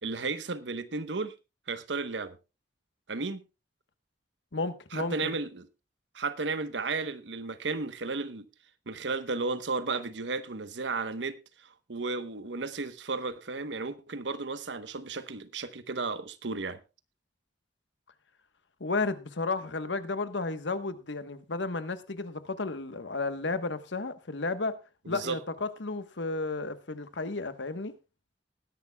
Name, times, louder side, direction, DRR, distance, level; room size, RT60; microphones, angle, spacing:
voice 1, 0.0-1.3 1.7-2.4 3.1-3.4 4.9-5.7 6.1-8.5 8.9-11.4 11.9-16.8 25.0-25.4, right 3 dB, 80° right, 1.0 m, -33 dB
voice 2, 4.5-5.3 18.8-24.7 25.1-27.9, left 3 dB, 85° left, 1.2 m, -33 dB
20.0 x 11.0 x 2.3 m
head